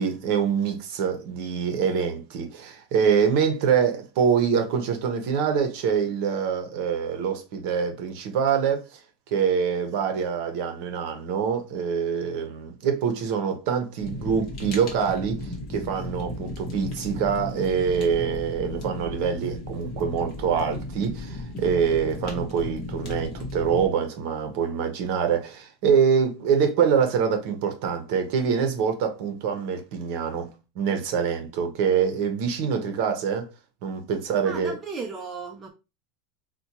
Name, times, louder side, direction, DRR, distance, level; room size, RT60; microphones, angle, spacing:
voice 1, 0.0-9.0 9.3-33.5 33.8-34.8, right 7 dB, 50° right, 0.8 m, -25 dB
Fire, 14.0-23.9, left 1 dB, 35° left, 0.9 m, -35 dB
voice 2, 34.4-35.7, right 4 dB, 15° right, 0.4 m, -35 dB
4.2 x 2.2 x 2.8 m
supercardioid pair, 175°, 0 cm